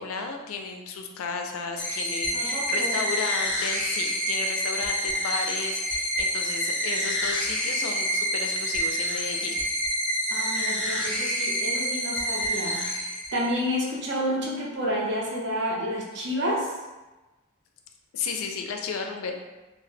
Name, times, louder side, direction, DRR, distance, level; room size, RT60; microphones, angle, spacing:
voice 1, 0.0-9.6 18.1-19.3, left 5 dB, 80° left, 3 dB, 0.3 m, -33 dB
sound 1, 1.8-13.7, equal, 5° left, 0.4 m, -28 dB
voice 2, 2.3-3.1 10.3-13.0 13.3-16.7, equal, 55° right, -2 dB, 0.5 m, -30 dB
2.1 x 2.0 x 3.1 m, 1.1 s
head